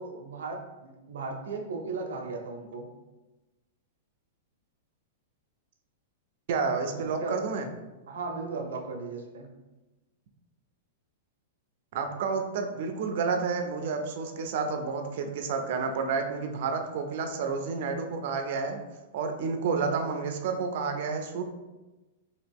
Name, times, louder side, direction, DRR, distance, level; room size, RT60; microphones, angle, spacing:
voice 1, 0.0-2.9 6.9-7.4 8.1-9.5, right 4 dB, 85° right, 3 dB, 0.6 m, -36 dB
voice 2, 6.5-7.7 11.9-18.8 19.1-21.4, right 5 dB, 45° right, 5 dB, 0.3 m, -30 dB
2.9 x 2.4 x 3.4 m, 1.1 s
supercardioid pair, 175°, 0 cm